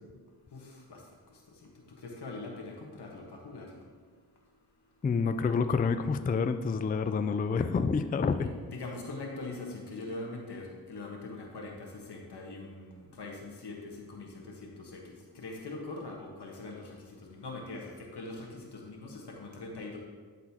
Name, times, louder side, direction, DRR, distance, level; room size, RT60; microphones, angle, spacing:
voice 1, 0.5-1.0 1.3-1.7 2.0-3.8 8.4-20.0, left 2 dB, 75° left, 0 dB, 1.4 m, -42 dB
voice 2, 5.0-8.5, left 5 dB, 25° left, 9 dB, 0.3 m, -28 dB
12.0 x 4.2 x 2.9 m, 1.5 s
cardioid pair, 50°, 40 cm